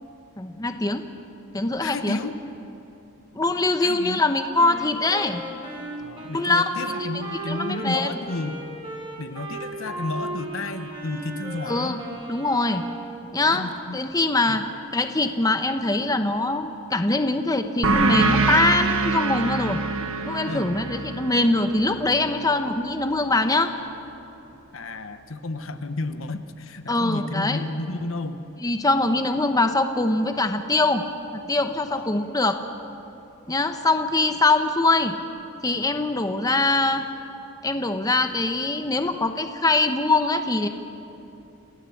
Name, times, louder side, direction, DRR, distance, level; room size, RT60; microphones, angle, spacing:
voice 1, 0.4-1.1 1.5-2.2 3.3-5.4 6.3-6.7 7.1-8.2 11.7-12.0 12.3-12.8 13.3-13.7 13.9-14.7 14.9-19.8 20.3-23.7 26.9-27.6 28.6-31.0 31.3-32.6 33.5-35.2 35.6-37.0 37.6-40.7, left 2 dB, 15° left, 7 dB, 0.9 m, -23 dB
voice 2, 1.8-2.4 3.8-4.2 6.0-8.6 9.2-12.0 13.5-14.0 14.5-14.6 20.5-20.7 24.7-28.4 31.9-32.2 36.3-36.4, left 2 dB, 70° left, 9 dB, 1.1 m, -32 dB
Wind instrument woodwind instrument, 4.6-13.2, right 2 dB, 25° right, 3.8 m, -36 dB
sound 1, 17.8-23.0, right 3 dB, 75° right, 1.5 m, -25 dB
28.5 x 15.0 x 7.2 m, 2.8 s
head